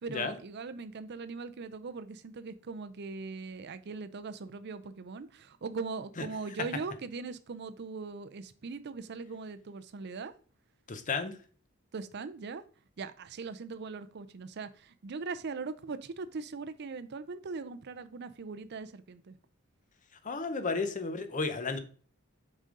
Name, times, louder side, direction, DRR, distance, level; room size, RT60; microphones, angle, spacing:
voice 1, 0.0-10.3 11.9-12.6 13.0-19.4, right 4 dB, 50° right, 0.5 m, -40 dB
voice 2, 10.9-11.4 20.2-21.8, left 4 dB, 35° left, 0.7 m, -33 dB
6.5 x 5.0 x 3.8 m
head